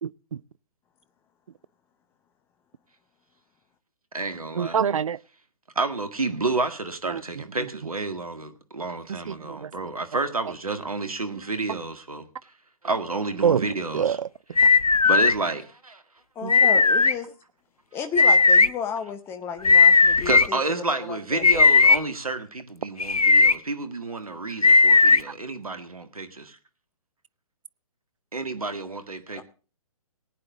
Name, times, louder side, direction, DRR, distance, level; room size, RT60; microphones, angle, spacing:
voice 1, 0.0-0.4 4.6-5.2 7.1-7.2 7.6-7.7 9.3-9.7 13.4-13.7 13.9-14.6 16.4-16.5, right 7 dB, 65° right, 0.5 m, -26 dB
voice 2, 4.1-4.8 5.8-12.2 12.8-14.2 15.0-16.0 20.1-26.6 28.3-29.4, right 3 dB, 80° right, 1.9 m, -30 dB
sound 1, 14.6-15.3 16.5-17.1 18.2-18.7 19.6-20.5 21.4-22.0 23.0-23.5 24.6-25.2, left 4 dB, 90° left, 0.6 m, -16 dB
voice 3, 16.4-17.3 17.9-20.6 20.8-21.7 29.3-29.4, left 6 dB, 15° left, 0.8 m, -33 dB
19.0 x 9.1 x 3.9 m
figure-of-eight pair, 130°, 18 cm